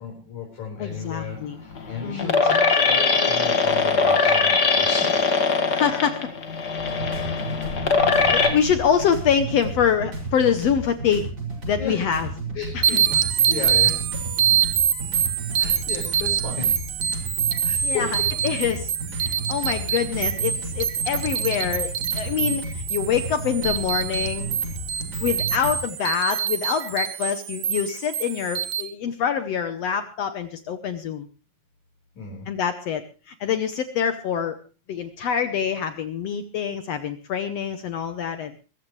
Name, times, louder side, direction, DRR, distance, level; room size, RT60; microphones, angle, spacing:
voice 1, 0.0-5.3 11.8-12.0 12.5-14.0 15.6-16.8 17.6-18.3 19.9-20.0 22.2-22.3 24.9-25.0 32.2-32.5, left 4 dB, 55° left, -1 dB, 5.8 m, -34 dB
voice 2, 0.8-1.6 2.0-2.4 5.7-6.3 7.1-7.4 8.0-11.3 11.6-12.3 12.7-12.8 17.8-18.1 18.4-24.5 25.2-31.3 32.5-33.0 33.3-34.6 34.9-38.5, left 8 dB, 75° left, 9 dB, 1.5 m, -25 dB
sound 1, 1.0-8.5, left 4 dB, 35° left, 2.0 m, -21 dB
sound 2, 6.8-25.8, right 2 dB, 25° right, 6.4 m, -33 dB
sound 3, 12.8-28.8, right 9 dB, 60° right, 2.1 m, -25 dB
23.5 x 14.5 x 3.2 m, 0.34 s
omnidirectional pair, 4.1 m